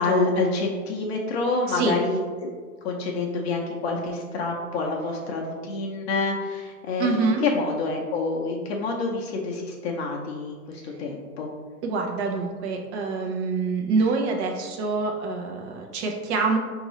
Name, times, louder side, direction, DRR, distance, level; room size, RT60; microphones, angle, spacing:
voice 1, 0.0-2.5 2.8-11.5, left 3 dB, 40° left, -1 dB, 0.6 m, -27 dB
voice 2, 1.7-2.0 7.0-7.4 11.8-16.6, right 4 dB, 45° right, 2 dB, 0.7 m, -26 dB
5.2 x 2.7 x 3.0 m, 1.5 s
hypercardioid pair, 125°, 47 cm